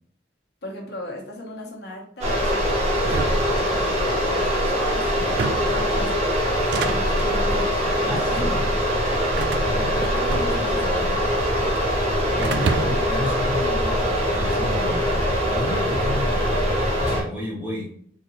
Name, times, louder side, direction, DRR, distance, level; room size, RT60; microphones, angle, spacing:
voice 1, 0.6-6.2 6.8-8.6 9.8-11.3, left 1 dB, 65° left, -2 dB, 1.1 m, -37 dB
sound 1, 2.2-17.2, equal, 35° right, 1.0 m, -22 dB
sound 2, 3.0-4.2 5.2-5.8 6.5-7.3 8.1-8.5 9.4-10.9 11.1-11.9 12.4-13.2, right 4 dB, 70° right, 0.4 m, -30 dB
voice 2, 8.1-8.7 9.6-10.1 12.1-15.1 15.4-17.9, left 2 dB, 10° right, -6 dB, 1.2 m, -32 dB
3.9 x 2.8 x 2.7 m, 0.63 s
head